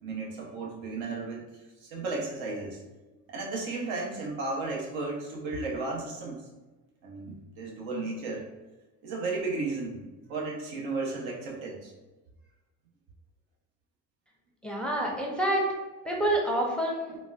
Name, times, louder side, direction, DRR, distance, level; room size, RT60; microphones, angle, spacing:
voice 1, 0.0-1.5 1.8-2.8 3.3-6.4 7.0-8.4 9.0-10.0 10.3-11.9, right 3 dB, 75° right, -1 dB, 0.9 m, -34 dB
voice 2, 14.6-15.7 16.0-17.2, right 1 dB, ahead, -1 dB, 0.5 m, -27 dB
3.9 x 2.1 x 2.3 m, 1.1 s
supercardioid pair, 70°, 46 cm